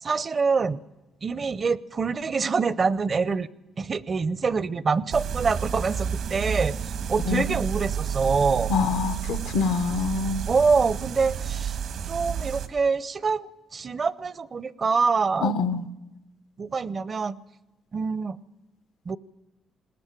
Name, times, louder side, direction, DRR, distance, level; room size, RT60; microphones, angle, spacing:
voice 1, 0.0-0.8 1.2-3.5 3.8-6.8 7.1-8.7 10.5-11.8 12.1-15.9 16.6-17.4 17.9-18.4 19.1-19.2, right 5 dB, 40° right, 19 dB, 0.7 m, -25 dB
sound 1, 5.1-12.7, right 8 dB, 80° right, 1.6 m, -31 dB
voice 2, 8.7-10.4 15.4-15.9, left 5 dB, 85° left, 12 dB, 1.0 m, -25 dB
20.5 x 18.5 x 9.0 m, 1.0 s
cardioid pair, 90°, 0 cm